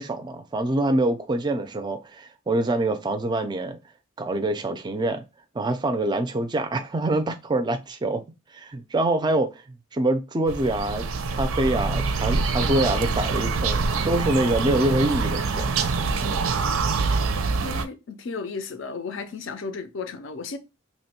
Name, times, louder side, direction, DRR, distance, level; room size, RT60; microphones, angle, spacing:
voice 1, 0.0-3.8 4.2-5.2 5.5-8.2 8.5-11.1 11.4-15.8 16.2-16.4, right 1 dB, 20° right, 0.4 m, -25 dB
sound 1, 10.5-17.8, right 4 dB, 85° right, 0.5 m, -25 dB
voice 2, 17.6-20.6, left 4 dB, 65° left, 0.5 m, -34 dB
3.0 x 2.2 x 4.2 m
head